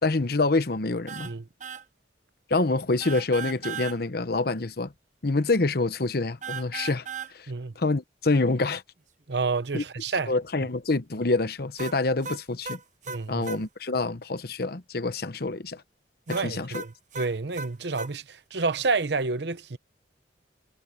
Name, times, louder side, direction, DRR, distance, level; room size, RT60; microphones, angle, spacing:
voice 1, 0.0-1.3 2.5-4.9 5.2-8.8 9.7-9.8 10.3-12.8 13.3-15.8 16.3-16.8, left 3 dB, 60° left, 1.0 m, -26 dB
sound 1, 1.1-1.3 1.6-1.8 3.0-4.0 6.4-7.3 11.8-13.6 16.3-18.1, right 6 dB, 45° right, 1.0 m, -37 dB
voice 2, 9.3-10.3 13.1-13.5 16.3-19.8, right 4 dB, 70° right, 0.9 m, -29 dB
head